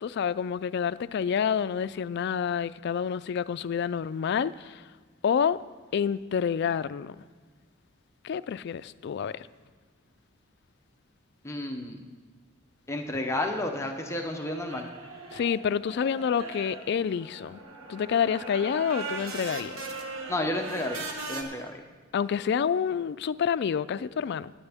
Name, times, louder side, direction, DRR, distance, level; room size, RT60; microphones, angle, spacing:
voice 1, 0.0-4.8 5.2-5.6 5.9-7.2 8.2-9.5 15.3-17.6 17.9-19.8 22.1-24.5, left 7 dB, 55° left, 0.3 m, -28 dB
voice 2, 11.4-12.1 12.9-14.9 20.3-21.8, left 1 dB, 15° left, 0.7 m, -31 dB
sound 1, 13.8-21.4, right 3 dB, 80° right, 1.3 m, -40 dB
17.5 x 8.8 x 3.5 m
head